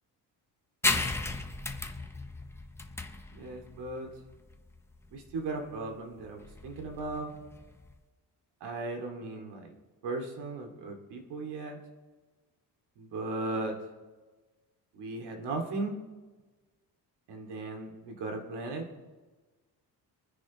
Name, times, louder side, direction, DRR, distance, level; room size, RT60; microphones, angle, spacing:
sound 1, 0.8-8.0, left 2 dB, 5° left, 0.7 m, -35 dB
voice 1, 3.3-4.1 5.1-7.3 8.6-9.7 10.0-11.8 13.0-13.8 14.9-15.9 17.3-18.9, right 2 dB, 80° right, 2 dB, 2.5 m, -37 dB
26.0 x 10.0 x 3.1 m, 1.3 s
cardioid pair, 165°, 40 cm